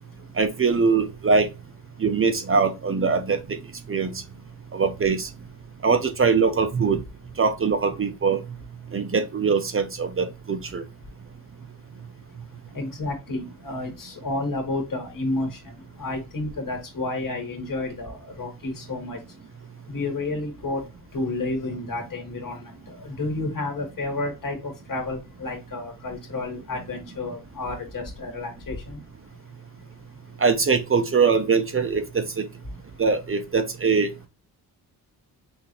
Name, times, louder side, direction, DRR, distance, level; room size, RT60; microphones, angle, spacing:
voice 1, 0.4-1.5 2.0-3.6 3.9-4.2 4.7-5.3 5.8-7.0 7.4-8.4 8.9-10.8 30.4-32.5 33.0-34.1, right 5 dB, 35° right, 0.7 m, -22 dB
voice 2, 12.7-19.2 19.9-20.8 21.1-29.0, left 2 dB, 55° left, 2.1 m, -31 dB
5.9 x 2.7 x 3.1 m
wide cardioid pair, 135°, 39 cm